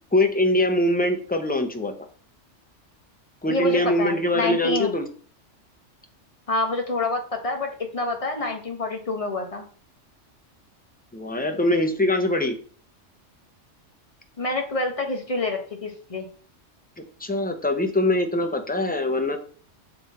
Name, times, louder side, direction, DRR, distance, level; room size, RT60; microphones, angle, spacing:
voice 1, 0.1-1.9 3.4-5.1 11.1-12.6 17.2-19.4, left 1 dB, 10° left, 5 dB, 0.5 m, -23 dB
voice 2, 3.5-4.9 6.5-9.7 14.4-16.3, left 2 dB, 30° left, 2 dB, 1.2 m, -27 dB
6.8 x 3.8 x 4.2 m, 0.44 s
omnidirectional pair, 1.3 m